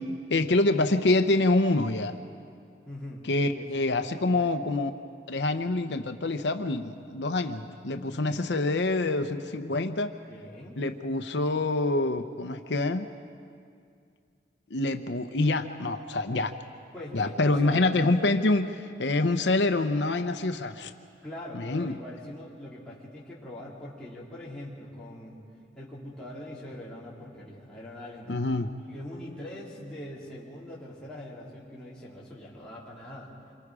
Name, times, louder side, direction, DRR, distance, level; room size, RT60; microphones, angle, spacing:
voice 1, 0.3-2.2 3.2-4.9 5.3-10.1 10.8-13.1 14.7-16.5 17.1-20.9 21.5-22.0 28.3-28.7, left 2 dB, 80° left, 7 dB, 0.8 m, -26 dB
voice 2, 2.9-3.6 4.2-4.5 10.2-10.8 16.9-17.9 21.2-25.4 25.8-28.6 28.8-33.3, left 1 dB, 5° left, -8 dB, 3.4 m, -42 dB
27.0 x 23.5 x 4.9 m, 2.3 s
head